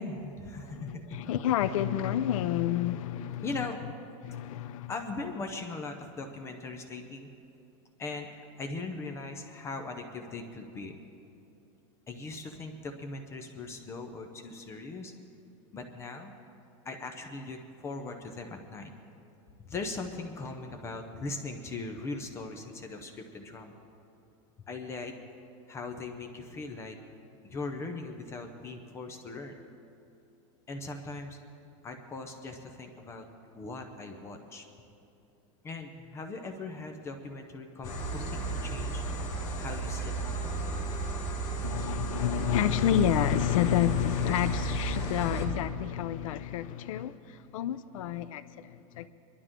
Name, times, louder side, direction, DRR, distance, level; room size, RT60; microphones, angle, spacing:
voice 1, 0.0-1.2 3.4-3.8 4.9-7.3 8.0-8.3 8.6-11.0 12.1-15.1 15.7-16.3 16.8-18.9 19.7-23.8 24.7-25.1 25.7-27.0 27.4-29.5 30.7-31.4 31.8-33.3 33.6-34.7 35.6-39.0 39.6-40.5, left 3 dB, 15° left, 0.6 m, -39 dB
voice 2, 0.7-3.5 4.2-4.9 41.6-49.1, left 11 dB, 90° left, 0.6 m, -29 dB
sound 1, 37.8-45.5, right 3 dB, 40° left, 2.3 m, -34 dB
22.5 x 12.0 x 3.7 m
supercardioid pair, 175°, 17 cm